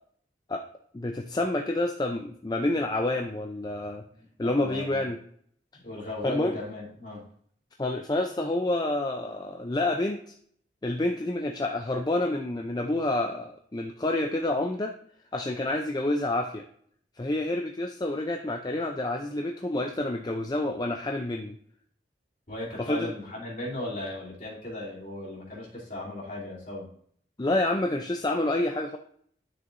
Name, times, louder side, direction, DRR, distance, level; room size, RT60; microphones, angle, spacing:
voice 1, 0.9-4.0 4.4-5.2 6.2-6.6 7.8-10.2 10.8-14.9 15.3-16.6 17.2-21.5 22.8-23.1 27.4-29.0, left 1 dB, 25° left, 4 dB, 0.5 m, -28 dB
voice 2, 4.1-5.1 5.7-7.2 22.5-26.9, left 1 dB, 45° left, -6 dB, 3.0 m, -37 dB
10.5 x 6.3 x 2.6 m, 0.62 s
head